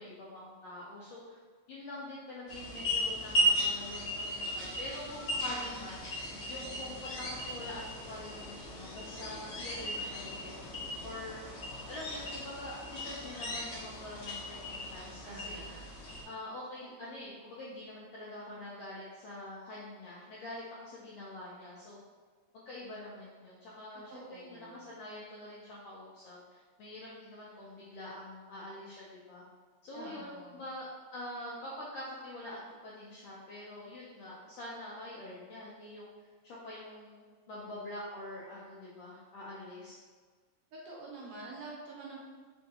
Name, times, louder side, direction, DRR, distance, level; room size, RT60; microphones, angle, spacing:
voice 1, 0.0-1.4 1.7-6.0 6.4-10.5 11.0-11.4 11.9-15.6 16.2-22.0 22.7-29.4 29.8-30.8 31.1-36.1 36.4-40.0, left 1 dB, 85° left, -6 dB, 1.4 m, -45 dB
sound 1, 2.5-16.2, equal, 65° left, 1.1 m, -36 dB
voice 2, 15.3-15.9 24.1-24.7 29.9-30.6 40.7-42.2, right 3 dB, 80° right, -4 dB, 1.6 m, -47 dB
4.7 x 2.5 x 2.6 m, 1.5 s
omnidirectional pair, 3.4 m